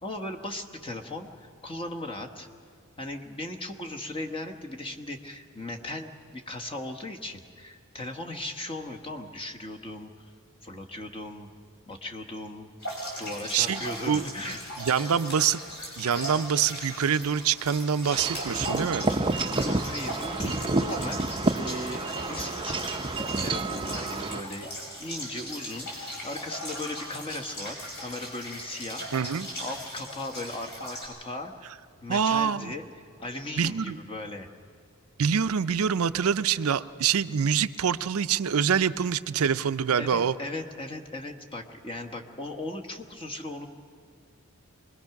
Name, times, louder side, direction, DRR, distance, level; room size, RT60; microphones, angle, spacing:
voice 1, 0.0-2.5 3.0-10.3 10.6-11.5 11.9-12.7 13.2-14.6 14.9-15.1 19.3-21.3 21.5-23.0 23.4-24.7 25.0-29.3 29.6-31.7 32.0-32.8 33.2-34.5 40.0-43.7, left 1 dB, 25° left, 3 dB, 1.2 m, -37 dB
sound 1, 12.8-31.0, equal, 50° left, 6.1 m, -38 dB
voice 2, 13.5-14.2 14.8-15.6 16.0-19.1 29.1-29.5 32.1-32.7 33.6-34.0 35.2-40.3, right 7 dB, 90° right, 12 dB, 0.5 m, -25 dB
Wind chime / Wind, 18.1-24.4, right 2 dB, 25° right, 0.5 m, -29 dB
25.0 x 20.5 x 5.9 m, 2.1 s
head